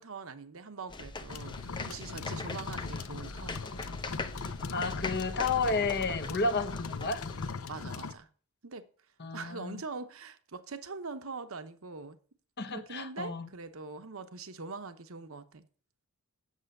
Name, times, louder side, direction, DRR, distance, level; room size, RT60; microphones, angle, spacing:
voice 1, 0.0-3.8 7.7-8.3 8.6-8.8 9.3-12.2 12.7-15.6, right 4 dB, 65° right, 0.9 m, -43 dB
sound 1, 0.9-7.5, left 3 dB, 20° left, 0.7 m, -41 dB
sound 2, 1.3-8.1, left 4 dB, 70° left, 0.7 m, -40 dB
voice 2, 4.7-7.2 9.2-9.8 12.6-13.5, left 3 dB, 50° left, 1.0 m, -31 dB
8.3 x 8.0 x 6.5 m
head